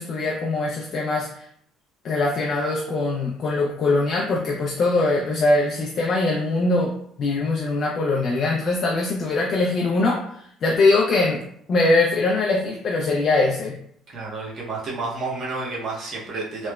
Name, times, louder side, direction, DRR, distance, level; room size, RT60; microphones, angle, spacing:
voice 1, 0.0-1.4 2.0-6.9 7.2-13.8, left 2 dB, 40° left, -1 dB, 0.3 m, -22 dB
voice 2, 14.1-16.7, right 3 dB, 45° right, -4 dB, 0.7 m, -30 dB
2.9 x 2.0 x 2.2 m, 0.67 s
cardioid pair, 145°, 0 cm